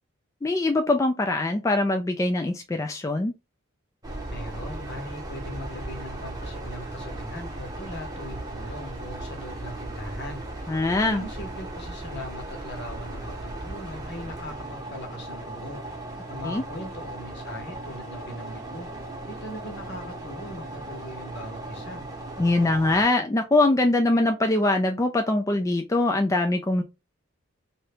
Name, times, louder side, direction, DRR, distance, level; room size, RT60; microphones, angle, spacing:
voice 1, 0.4-3.3 10.7-11.2 16.4-16.6 22.4-26.8, left 2 dB, 15° left, 0.3 m, -23 dB
sound 1, 4.0-23.1, right 1 dB, 20° right, 0.8 m, -37 dB
voice 2, 4.3-15.8 16.3-18.9 19.3-22.0, equal, 60° left, 1.1 m, -40 dB
2.8 x 2.6 x 3.3 m
head